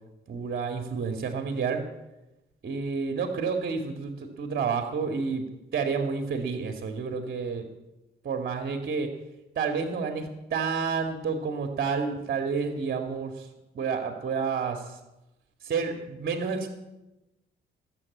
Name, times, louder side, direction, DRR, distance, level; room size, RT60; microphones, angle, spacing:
voice 1, 0.3-1.8 2.6-5.5 5.7-7.7 8.2-9.1 9.6-13.5 13.7-15.0 15.6-16.7, right 5 dB, 50° right, 5 dB, 2.0 m, -30 dB
19.5 x 7.6 x 8.5 m, 0.98 s
cardioid pair, 90°, 20 cm